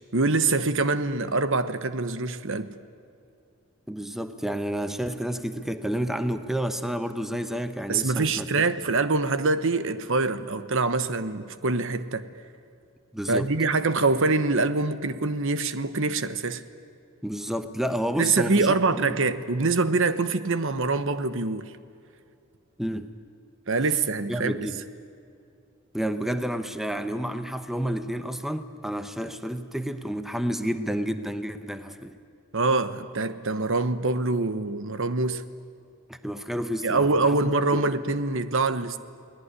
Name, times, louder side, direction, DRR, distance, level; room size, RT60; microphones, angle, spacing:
voice 1, 0.1-2.7 7.9-12.3 13.3-16.6 18.2-21.7 23.7-24.7 32.5-35.4 36.8-39.0, right 3 dB, 65° right, 1.2 m, -24 dB
voice 2, 3.9-8.7 13.1-13.5 17.2-18.7 18.9-19.2 22.8-23.1 24.3-24.8 25.9-32.2 36.1-37.8, equal, ahead, 1.0 m, -30 dB
29.5 x 19.5 x 9.8 m
head